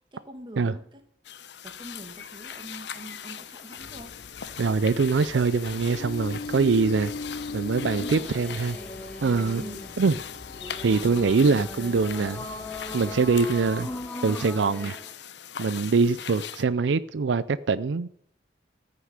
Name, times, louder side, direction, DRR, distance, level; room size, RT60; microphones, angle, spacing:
voice 1, 0.1-1.0 1.6-4.1 9.6-10.0, right 1 dB, 25° right, 2.2 m, -44 dB
sound 1, 1.2-16.6, left 8 dB, 75° left, 0.9 m, -41 dB
sound 2, 3.8-14.1, left 3 dB, 55° left, 0.4 m, -40 dB
voice 2, 4.6-7.1 7.5-8.8 9.2-9.6 10.0-10.1 10.8-12.5 12.9-13.9 14.2-15.0 15.6-18.1, right 4 dB, 85° right, 0.5 m, -23 dB
sound 3, 7.8-15.1, left 1 dB, 10° left, 1.1 m, -40 dB
14.5 x 6.8 x 8.9 m
head